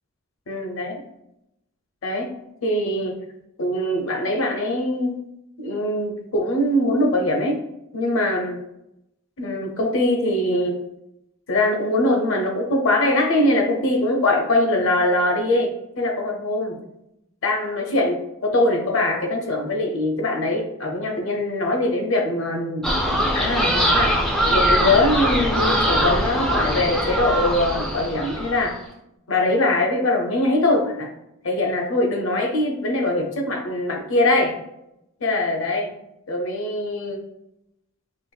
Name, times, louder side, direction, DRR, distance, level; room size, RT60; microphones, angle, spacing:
voice 1, 0.5-0.9 2.0-2.3 2.6-3.2 3.6-5.2 5.6-7.6 7.9-8.6 9.4-10.8 11.5-15.7 16.0-16.8 17.4-22.9 23.3-24.2 24.5-28.7 29.3-31.1 31.4-34.6 35.2-35.9 36.3-37.2, left 1 dB, 70° left, 1 dB, 0.7 m, -22 dB
sound 1, 22.8-28.7, equal, ahead, 0.3 m, -22 dB
4.4 x 2.4 x 2.2 m, 0.83 s
head